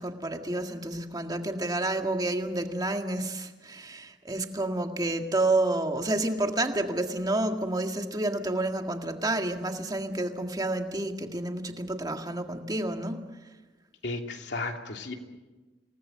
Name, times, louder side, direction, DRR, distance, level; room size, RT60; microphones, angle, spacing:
voice 1, 0.0-13.3, right 2 dB, 20° right, 5 dB, 1.8 m, -29 dB
voice 2, 14.0-15.1, left 3 dB, 75° left, 3 dB, 2.8 m, -34 dB
27.5 x 19.0 x 7.6 m, 1.2 s
head